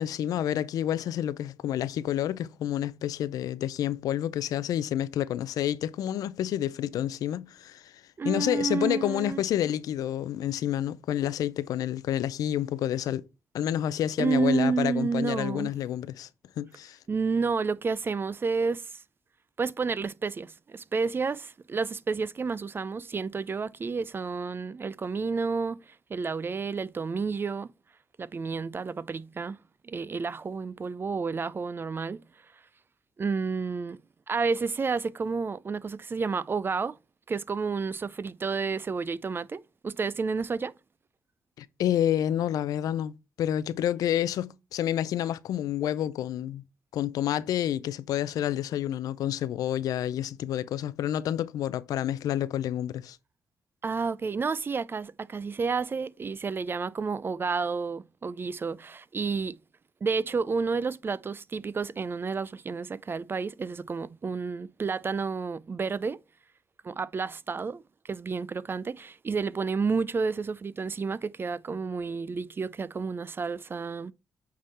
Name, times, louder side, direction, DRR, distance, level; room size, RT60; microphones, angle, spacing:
voice 1, 0.0-7.9 8.2-13.2 13.5-16.3 16.6-17.0 41.6-46.6 46.9-53.2, left 11 dB, 85° left, 0.4 m, -29 dB
voice 2, 8.2-9.4 14.2-15.7 17.1-19.0 19.6-27.7 28.2-29.6 29.8-32.2 33.2-34.0 34.3-37.0 37.3-40.7 53.8-59.6 60.0-66.2 66.8-74.1, right 4 dB, 35° right, 0.4 m, -30 dB
8.5 x 3.7 x 4.2 m
cardioid pair, 70°, 6 cm